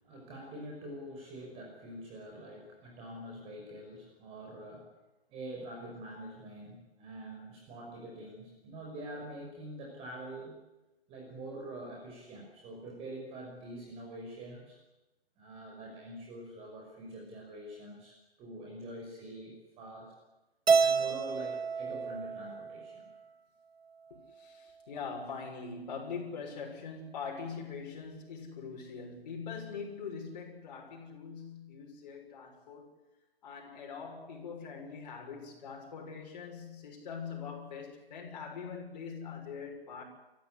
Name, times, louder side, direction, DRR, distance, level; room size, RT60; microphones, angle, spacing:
voice 1, 0.0-4.9 5.3-10.6 11.1-14.8 15.4-20.1 20.8-23.1, right 1 dB, 20° right, 0 dB, 5.6 m, -45 dB
Keyboard (musical), 20.7-23.0, right 5 dB, 75° right, 1.4 m, -29 dB
voice 2, 24.1-32.9 33.4-40.0, left 5 dB, 45° left, 1 dB, 6.5 m, -42 dB
28.5 x 14.5 x 9.9 m, 1.0 s
figure-of-eight pair, 140°, 31 cm